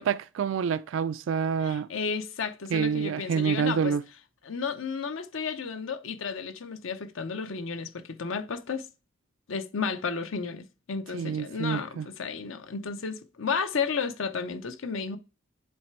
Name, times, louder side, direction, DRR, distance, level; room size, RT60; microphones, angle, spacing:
voice 1, 0.0-1.9 2.7-4.0 11.1-12.1, right 6 dB, 65° right, 0.3 m, -27 dB
voice 2, 1.6-4.0 4.4-8.9 9.5-15.2, left 5 dB, 70° left, 0.7 m, -33 dB
7.8 x 3.3 x 4.5 m
head